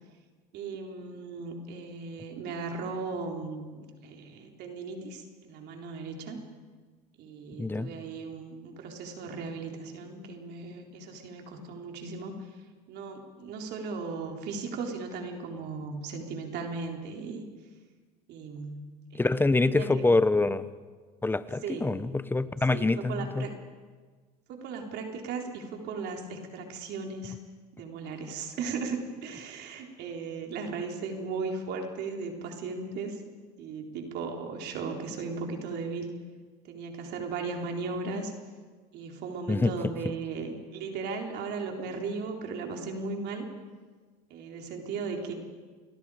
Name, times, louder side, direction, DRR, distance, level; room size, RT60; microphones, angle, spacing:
voice 1, 0.5-6.4 7.2-12.4 12.9-17.4 18.3-18.9 19.1-20.0 21.6-22.1 22.7-23.6 24.5-27.4 27.7-33.2 33.6-36.1 36.6-38.3 38.9-43.4 44.3-45.3, right 4 dB, 55° right, 2 dB, 3.8 m, -37 dB
voice 2, 7.6-7.9 19.2-20.7 21.2-23.5 39.5-39.7, left 3 dB, 10° left, 15 dB, 0.9 m, -25 dB
30.0 x 22.0 x 5.0 m, 1.4 s
supercardioid pair, 105°, 20 cm